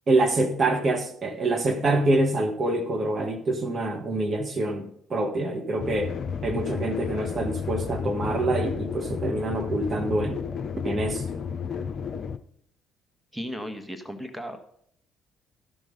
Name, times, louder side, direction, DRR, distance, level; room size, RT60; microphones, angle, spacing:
voice 1, 0.1-6.1 6.4-10.4 10.8-11.2, right 2 dB, 35° right, 1.5 m, -26 dB
sound 1, 5.8-12.4, left 6 dB, 45° left, 0.6 m, -32 dB
voice 2, 13.3-14.6, equal, ahead, 1.5 m, -35 dB
13.5 x 6.2 x 5.3 m
figure-of-eight pair, 50°, 0 cm